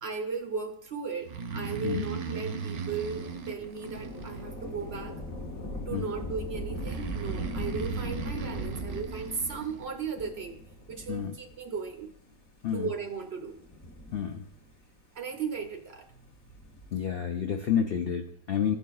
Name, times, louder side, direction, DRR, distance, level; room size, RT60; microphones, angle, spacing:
voice 1, 0.0-5.2 5.9-10.6 10.9-12.1 12.7-13.6 15.1-16.3, right 5 dB, 55° right, 4 dB, 0.8 m, -36 dB
Breathing, 1.2-4.9 6.7-9.8, right 5 dB, 70° right, 1.1 m, -37 dB
Thunder / Rain, 2.7-11.7 12.5-12.6 13.5-14.8 16.3-17.0, equal, 30° left, 0.8 m, -40 dB
voice 2, 14.1-14.4 16.9-18.8, left 8 dB, 85° left, 4 dB, 0.5 m, -29 dB
15.5 x 5.4 x 2.3 m, 0.69 s
omnidirectional pair, 1.7 m